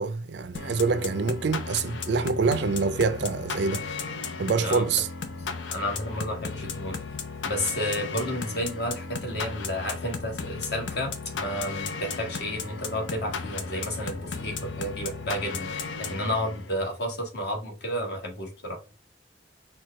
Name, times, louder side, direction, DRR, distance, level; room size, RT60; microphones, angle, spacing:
voice 1, 0.0-3.8 4.4-5.1, right 4 dB, 65° right, 0.4 m, -26 dB
sound 1, 0.5-16.8, left 5 dB, 85° left, 0.7 m, -35 dB
voice 2, 5.7-7.0 7.4-15.7 16.0-18.8, equal, 60° left, 1.4 m, -31 dB
4.5 x 2.3 x 4.6 m
head